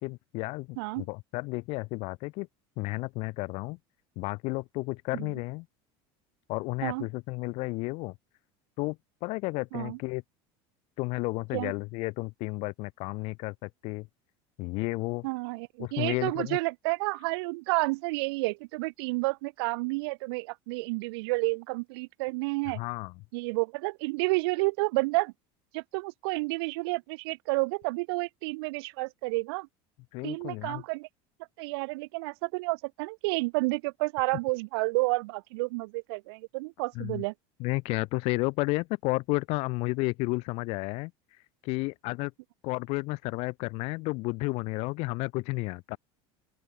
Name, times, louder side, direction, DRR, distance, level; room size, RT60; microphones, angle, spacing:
voice 1, 0.0-2.5 2.8-3.8 4.2-5.7 6.5-8.1 8.8-10.2 11.0-14.1 14.6-15.3 15.8-16.6 22.8-23.1 30.1-30.8 37.0-37.2 37.6-42.3 42.6-46.0, left 25 dB, 55° left, 3.5 m, -32 dB
voice 2, 15.2-22.8 23.3-25.3 25.7-29.7 30.2-31.1 31.6-37.3, right 26 dB, 75° right, 4.2 m, -30 dB
open air
cardioid pair, 170°, 13 cm